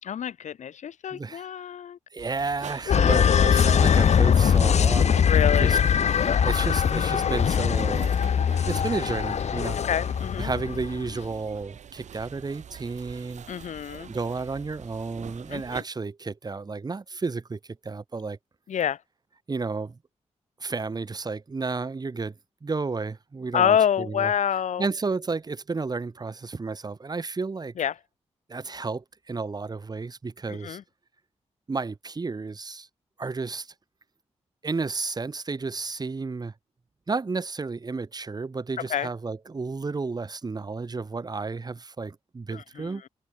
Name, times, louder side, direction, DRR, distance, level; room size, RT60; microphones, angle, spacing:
voice 1, 0.0-2.0 2.9-3.0 5.2-5.7 9.8-10.5 13.5-14.1 15.5-15.8 18.7-19.0 23.5-24.9 27.8-27.9 30.5-30.8 38.9-39.1 42.5-43.1, left 9 dB, 85° left, 4.8 m, -27 dB
voice 2, 1.1-1.5 2.1-5.3 5.6-5.8 6.1-8.2 8.7-9.8 10.4-13.5 14.1-18.4 19.5-20.0 20.6-22.3 22.6-24.3 24.8-27.7 28.5-30.8 31.7-32.9 33.2-33.7 34.6-36.5 37.1-43.0, right 4 dB, 35° right, 4.1 m, -32 dB
sound 1, 2.2-15.8, right 8 dB, 80° right, 5.3 m, -45 dB
sound 2, 2.9-11.1, left 7 dB, 70° left, 2.1 m, -21 dB
cardioid pair, 100°, 12 cm